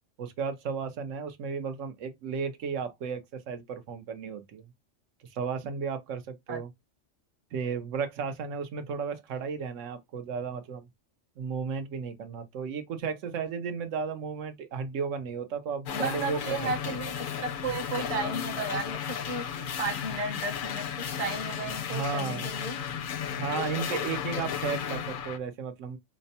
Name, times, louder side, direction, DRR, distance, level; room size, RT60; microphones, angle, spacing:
voice 1, 0.2-4.7 5.3-6.7 7.5-10.8 11.4-17.0 21.9-22.5 23.3-26.0, right 6 dB, 85° right, 1.0 m, -34 dB
sound 1, 15.9-25.4, left 8 dB, 60° left, 0.5 m, -34 dB
voice 2, 15.9-22.8, right 3 dB, 35° right, 0.8 m, -34 dB
5.0 x 2.1 x 2.7 m
omnidirectional pair, 1.3 m